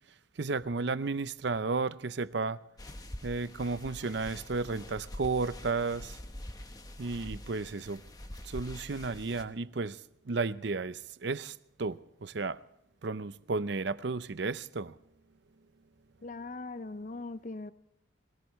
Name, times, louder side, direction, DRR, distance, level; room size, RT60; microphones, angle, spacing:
voice 1, 0.4-2.6 3.2-6.2 7.0-8.0 8.4-10.0 10.3-12.6 13.0-15.0, right 4 dB, 65° right, 0.6 m, -33 dB
sound 1, 2.8-9.4, left 1 dB, 20° left, 1.0 m, -45 dB
voice 2, 16.2-17.7, left 3 dB, 40° left, 0.5 m, -40 dB
21.5 x 18.0 x 3.2 m
head